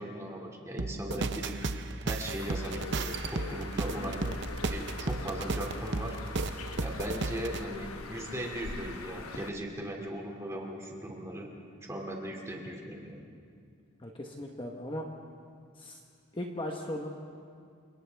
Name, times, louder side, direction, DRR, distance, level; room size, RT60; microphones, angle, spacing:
voice 1, 0.0-1.5 2.0-4.3 4.6-6.2 6.8-11.5 11.9-13.3, right 1 dB, 15° right, 0 dB, 2.4 m, -38 dB
sound 1, 0.8-7.6, right 3 dB, 55° right, 0.7 m, -34 dB
Bird, 2.4-9.5, left 4 dB, 85° left, 1.1 m, -43 dB
voice 2, 3.9-4.3 14.0-15.0 15.8-16.0 16.3-17.1, left 1 dB, 25° left, 1 dB, 1.2 m, -38 dB
29.5 x 26.0 x 3.5 m, 2.2 s
head